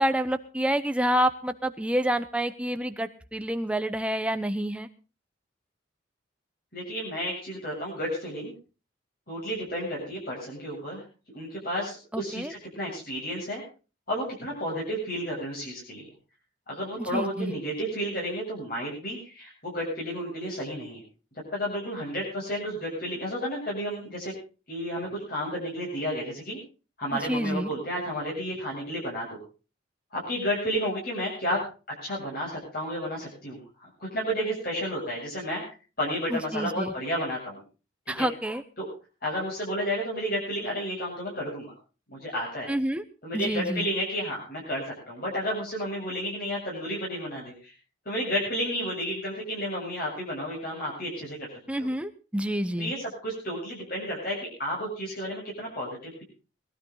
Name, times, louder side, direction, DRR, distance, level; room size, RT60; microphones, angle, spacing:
voice 1, 0.0-4.9 12.1-12.5 17.0-17.5 27.1-27.7 36.3-36.9 38.1-38.6 42.7-43.0 43.3-43.9 51.7-52.9, right 1 dB, 5° right, 9 dB, 0.8 m, -28 dB
voice 2, 6.7-8.5 9.3-11.0 11.3-13.6 14.1-16.1 16.7-21.0 21.5-24.3 24.7-26.6 27.0-29.4 30.1-31.6 32.0-35.6 36.0-37.6 38.1-38.3 38.8-38.9 39.2-41.7 42.1-42.7 43.2-47.7 48.0-51.5 51.8-51.9 52.8-56.2, equal, 50° left, -4 dB, 7.7 m, -32 dB
21.0 x 12.5 x 4.0 m, 0.34 s
head